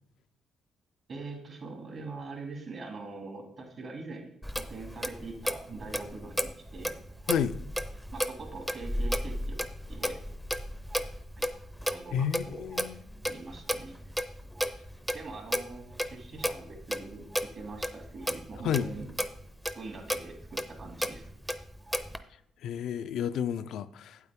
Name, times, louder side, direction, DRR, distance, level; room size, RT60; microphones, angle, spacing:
voice 1, 1.1-4.3 4.6-6.9 8.1-9.6 9.9-10.2 11.8-12.6 13.3-14.0 15.1-19.1 19.7-21.3, right 3 dB, 55° right, 2.7 m, -43 dB
Clock, 4.4-22.2, equal, 5° right, 0.6 m, -34 dB
voice 2, 12.1-13.0 18.6-18.9 22.6-24.2, left 8 dB, 75° left, 0.4 m, -31 dB
8.7 x 8.1 x 3.6 m
cardioid pair, 90°, 0 cm